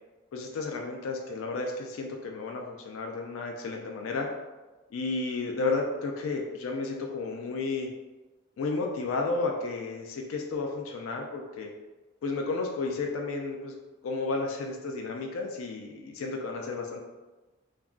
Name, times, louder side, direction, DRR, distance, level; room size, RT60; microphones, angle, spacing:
voice 1, 0.3-4.3 4.9-7.9 8.6-11.7 12.2-13.7 14.0-17.0, left 3 dB, 85° left, 1 dB, 0.4 m, -32 dB
2.3 x 2.3 x 3.5 m, 1.2 s
head